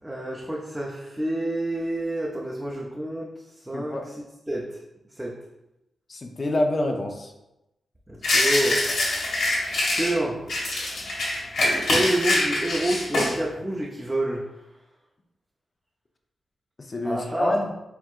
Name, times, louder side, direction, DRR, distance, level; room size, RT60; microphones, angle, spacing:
voice 1, 0.0-3.3 3.5-4.0 4.5-4.6 5.2-5.3 8.1-8.8 9.9-10.4 11.9-14.5 17.0-17.6, right 1 dB, 10° right, -3 dB, 0.5 m, -28 dB
voice 2, 3.7-4.1 6.1-7.3 16.8-17.7, left 1 dB, 35° left, 3 dB, 0.5 m, -27 dB
sound 1, 8.2-10.1 10.5-13.3, left 1 dB, 80° left, 1.4 m, -24 dB
4.5 x 3.4 x 2.4 m, 0.93 s
cardioid pair, 95°, 0 cm